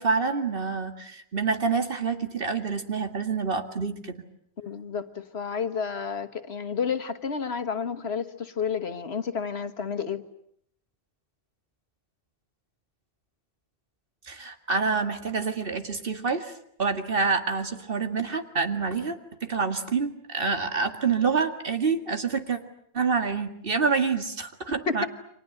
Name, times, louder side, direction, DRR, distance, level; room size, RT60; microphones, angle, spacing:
voice 1, 0.0-4.2 14.3-16.5 16.8-22.6 22.9-25.1, right 5 dB, 60° right, 7 dB, 2.2 m, -27 dB
voice 2, 4.6-10.2 24.9-25.1, left 6 dB, 75° left, 8 dB, 1.7 m, -30 dB
29.5 x 25.0 x 7.9 m, 0.69 s
omnidirectional pair, 1.1 m